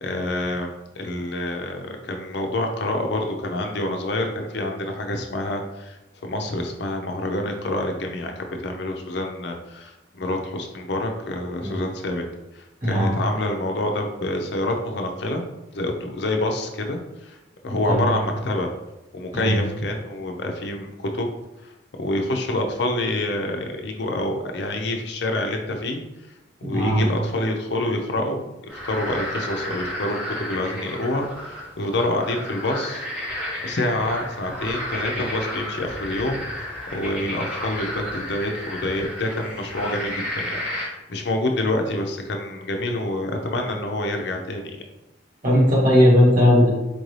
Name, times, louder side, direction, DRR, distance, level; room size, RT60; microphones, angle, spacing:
voice 1, 0.0-12.2 12.5-15.4 15.7-17.4 17.6-18.7 19.1-21.3 21.6-26.0 26.6-33.1 33.6-36.4 36.9-44.8, left 1 dB, 60° left, 3 dB, 0.5 m, -27 dB
voice 2, 26.6-27.0 45.4-46.7, equal, 45° right, -5 dB, 1.5 m, -17 dB
sound 1, 28.7-40.9, left 1 dB, 5° right, 0.9 m, -32 dB
4.5 x 2.6 x 3.1 m, 1.0 s
head